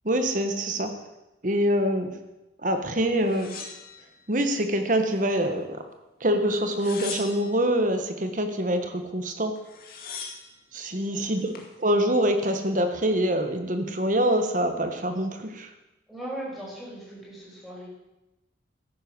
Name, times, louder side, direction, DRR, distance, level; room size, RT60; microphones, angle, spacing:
voice 1, 0.0-0.9 1.4-2.1 2.6-3.7 4.3-5.8 6.2-9.5 10.7-11.5 11.8-15.7, right 1 dB, 45° right, 7 dB, 1.5 m, -25 dB
sound 1, 3.3-4.6 5.1-5.8 6.6-7.7 9.2-9.3 9.5-10.5 11.2-11.7, left 5 dB, 50° left, 2.2 m, -40 dB
voice 2, 10.9-11.2 16.1-17.9, right 1 dB, ahead, -6 dB, 5.6 m, -38 dB
13.5 x 10.5 x 6.2 m, 0.97 s
head